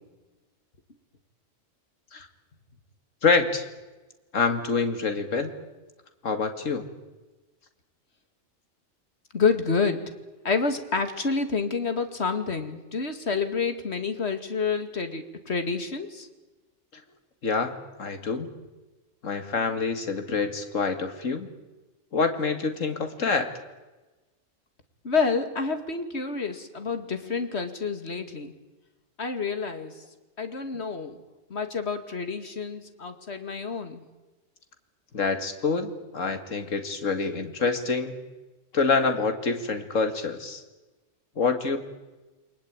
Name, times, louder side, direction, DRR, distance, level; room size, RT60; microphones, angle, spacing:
voice 1, 3.2-3.7 4.3-5.5 6.2-6.9 16.9-17.0 17.4-18.5 19.2-21.5 22.1-23.5 35.1-38.1 38.7-40.6 41.4-41.8, left 4 dB, 80° left, 7 dB, 2.4 m, -26 dB
voice 2, 9.3-10.1 10.4-16.3 25.0-28.5 29.2-29.9 30.4-31.2 31.5-34.0, left 4 dB, 60° left, 8 dB, 2.5 m, -28 dB
29.0 x 22.0 x 8.9 m, 1.2 s
omnidirectional pair, 1.3 m